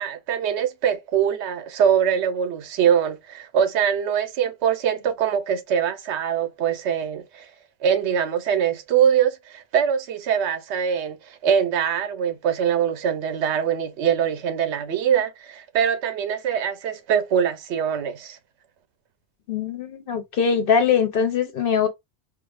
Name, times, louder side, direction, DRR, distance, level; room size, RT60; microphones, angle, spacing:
voice 1, 0.0-7.5 7.8-11.2 11.4-18.4, right 8 dB, 80° right, 0.9 m, -23 dB
voice 2, 19.5-21.9, left 7 dB, 60° left, 0.8 m, -22 dB
4.7 x 2.0 x 2.3 m
omnidirectional pair, 1.2 m